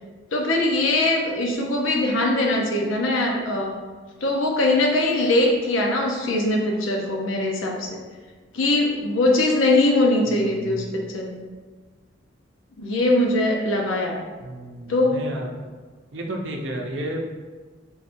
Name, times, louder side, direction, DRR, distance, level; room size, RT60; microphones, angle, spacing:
voice 1, 0.3-3.7 4.2-8.0 8.5-10.8 11.1-11.4 12.8-14.2 14.9-15.2, left 2 dB, 85° left, 0 dB, 0.7 m, -21 dB
voice 2, 10.3-11.0 14.4-15.7 16.1-17.2, right 1 dB, 70° right, 1 dB, 0.6 m, -32 dB
4.4 x 3.7 x 2.6 m, 1.4 s
head